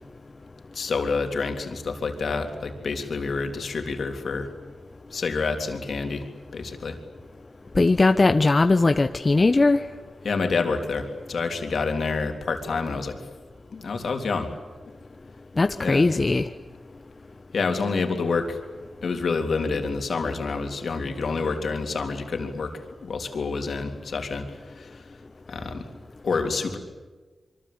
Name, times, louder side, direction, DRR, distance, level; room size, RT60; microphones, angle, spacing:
voice 1, 0.7-4.5 5.1-6.3 6.5-7.0 10.2-13.2 13.7-14.5 15.8-16.1 17.5-18.6 19.0-25.0 25.5-25.9 26.2-26.8, left 4 dB, 70° left, 5 dB, 3.5 m, -28 dB
voice 2, 7.8-9.8 15.6-16.5, left 3 dB, 40° left, 8 dB, 1.0 m, -19 dB
25.5 x 23.5 x 8.8 m, 1.3 s
cardioid pair, 45°, 0 cm